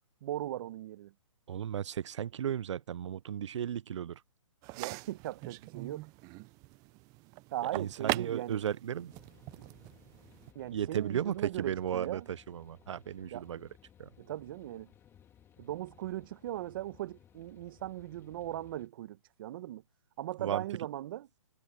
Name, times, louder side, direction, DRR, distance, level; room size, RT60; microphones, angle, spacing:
voice 1, 0.2-1.1 4.8-6.1 7.5-8.6 10.5-12.2 13.3-13.4 14.2-14.9 15.6-19.8 20.2-21.3, right 14 dB, 45° right, 1.4 m, -39 dB
voice 2, 1.5-4.2 7.6-9.1 10.7-13.7 14.0-14.1 20.4-20.6, right 9 dB, 65° right, 0.6 m, -35 dB
sound 1, 4.6-10.5, right 23 dB, 20° right, 0.6 m, -41 dB
sound 2, 9.1-18.9, left 9 dB, 15° left, 2.9 m, -61 dB
hypercardioid pair, 145°, 17 cm